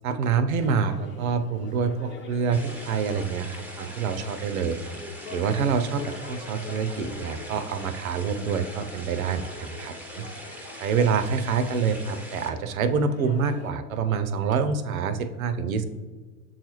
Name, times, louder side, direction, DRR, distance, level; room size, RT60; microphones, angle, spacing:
voice 1, 0.0-4.8 5.3-10.3 10.8-15.8, right 5 dB, 85° right, 10 dB, 0.5 m, -26 dB
sound 1, 0.6-13.7, left 4 dB, 30° left, 0.8 m, -44 dB
sound 2, 2.5-12.5, right 1 dB, 5° right, 0.4 m, -43 dB
7.2 x 2.4 x 2.9 m, 1.4 s
hypercardioid pair, 85°, 41 cm